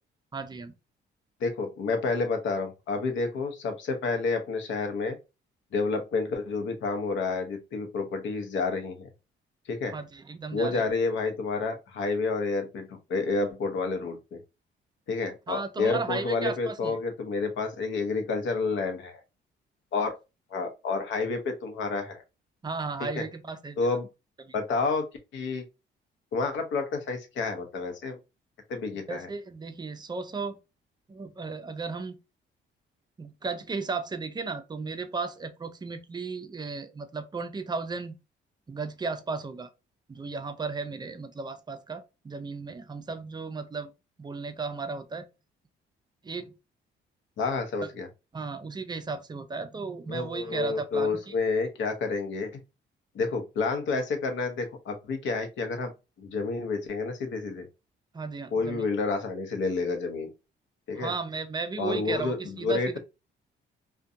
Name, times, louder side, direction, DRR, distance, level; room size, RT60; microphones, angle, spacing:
voice 1, 0.3-0.7 9.9-10.8 15.5-17.0 22.6-23.8 24.4-24.5 29.1-30.6 31.1-32.2 33.2-38.2 38.7-39.7 40.1-43.9 44.2-45.3 46.2-46.5 47.8-47.9 48.3-51.3 58.1-58.9 60.9-63.0, right 4 dB, 20° right, 0.4 m, -35 dB
voice 2, 1.4-5.2 5.7-9.1 9.7-9.9 10.5-14.4 15.1-19.2 19.9-20.1 20.5-22.2 23.0-23.2 23.8-24.1 24.5-25.1 25.3-25.6 26.3-28.2 28.7-29.3 47.4-48.1 50.1-52.6 53.1-55.9 56.2-57.7 58.5-60.3 60.9-61.1 61.8-63.0, left 4 dB, 70° left, 0.7 m, -29 dB
2.5 x 2.2 x 2.5 m
cardioid pair, 90°, 20 cm